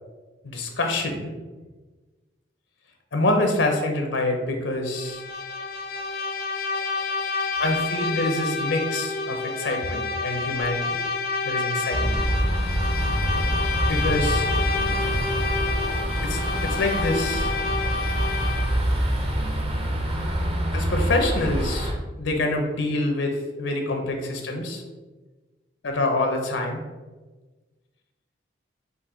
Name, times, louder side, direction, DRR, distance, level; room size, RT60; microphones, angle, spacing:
voice 1, 0.4-1.3 3.1-5.2 7.6-11.0 11.4-12.2 13.8-14.5 16.2-17.5 20.7-21.9 22.2-24.8 25.8-26.8, left 2 dB, 85° left, 3 dB, 0.7 m, -26 dB
Bowed string instrument, 5.0-18.9, left 4 dB, 55° left, 0.4 m, -29 dB
sound 1, 11.9-21.9, equal, 30° right, 0.6 m, -26 dB
5.3 x 2.6 x 3.8 m, 1.3 s
head